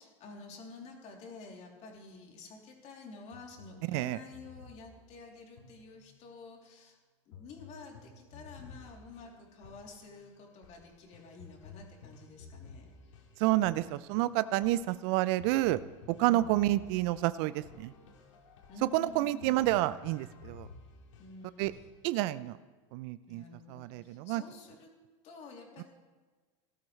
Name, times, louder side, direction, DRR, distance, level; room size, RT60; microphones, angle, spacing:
voice 1, 0.0-7.0 7.2-13.1 16.2-16.5 18.7-19.5 21.2-21.8 23.3-24.9 25.2-25.8, left 3 dB, 45° left, 0 dB, 3.3 m, -50 dB
sound 1, 3.3-6.4 7.3-22.0, left 4 dB, 75° left, 2.1 m, -54 dB
voice 2, 13.4-15.8 16.1-17.9 18.9-20.7 21.6-21.7 22.0-22.6 22.9-24.4, right 16 dB, 60° right, 17 dB, 0.5 m, -29 dB
18.0 x 12.5 x 3.3 m, 1.4 s
hypercardioid pair, 95°, 16 cm